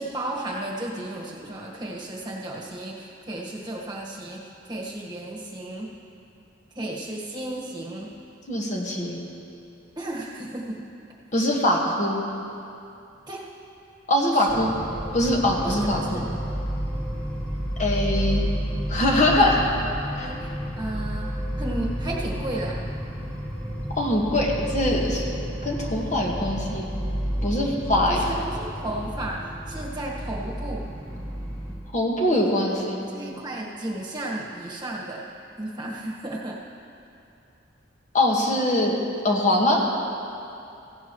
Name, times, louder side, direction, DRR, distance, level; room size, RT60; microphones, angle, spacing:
voice 1, 0.0-2.9 3.3-4.4 4.7-5.9 6.8-8.1 10.0-10.8 13.3-13.4 15.6-16.3 20.2-21.3 21.6-22.7 27.9-29.4 29.7-30.9 32.3-32.5 33.0-35.2 35.6-36.6, right 1 dB, 25° right, -3 dB, 1.5 m, -33 dB
voice 2, 8.5-9.2 11.3-12.2 14.1-14.7 15.1-16.2 17.8-18.4 18.9-19.6 20.2-20.3 24.0-25.3 25.6-26.9 27.4-28.2 31.9-33.1 38.1-38.9 39.2-39.9, left 1 dB, 40° left, -2 dB, 1.6 m, -22 dB
sound 1, 14.5-31.8, equal, 10° left, 2.1 m, -31 dB
17.0 x 15.5 x 3.1 m, 2.7 s
head